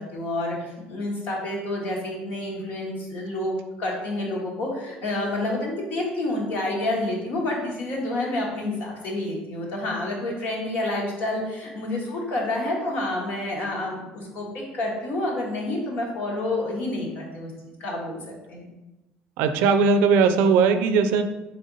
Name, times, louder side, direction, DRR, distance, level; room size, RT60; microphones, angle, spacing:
voice 1, 0.0-17.5 17.8-18.2 18.5-18.7, left 1 dB, 60° left, -2 dB, 1.4 m, -29 dB
voice 2, 19.4-21.2, right 5 dB, 75° right, 9 dB, 0.4 m, -19 dB
3.9 x 3.4 x 4.0 m, 1.0 s
cardioid pair, 115°, 4 cm